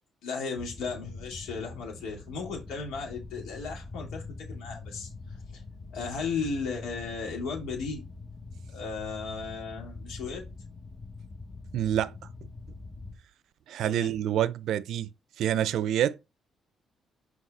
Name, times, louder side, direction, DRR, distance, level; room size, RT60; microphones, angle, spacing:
voice 1, 0.2-4.2 4.5-5.1 5.5-5.6 5.9-8.0 8.7-10.4 13.8-14.1, left 4 dB, 85° left, 2.9 m, -35 dB
sound 1, 0.6-13.2, left 3 dB, 25° left, 1.0 m, -44 dB
voice 2, 11.7-12.1 13.7-15.1 15.4-16.2, right 10 dB, 80° right, 0.4 m, -27 dB
6.2 x 4.7 x 3.3 m
cardioid pair, 90°, 0 cm